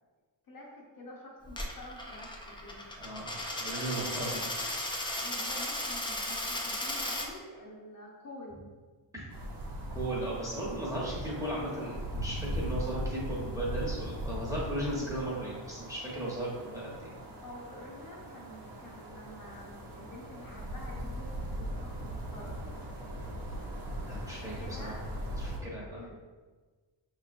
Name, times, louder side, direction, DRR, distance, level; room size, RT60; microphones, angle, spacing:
voice 1, 0.5-2.8 3.9-4.5 5.2-8.7 17.4-22.9 24.4-25.0 25.7-26.2, left 1 dB, 45° left, -3 dB, 0.8 m, -48 dB
Coin (dropping), 1.5-7.3, left 1 dB, 10° left, 0.4 m, -35 dB
voice 2, 3.0-3.3 3.6-4.4 9.1-9.2 9.9-17.2 24.0-24.9 25.4-26.0, right 1 dB, 5° right, -6 dB, 1.0 m, -36 dB
sound 1, 9.3-25.6, equal, 50° right, 0.8 m, -39 dB
5.2 x 3.1 x 2.5 m, 1.4 s
wide cardioid pair, 140°, 45 cm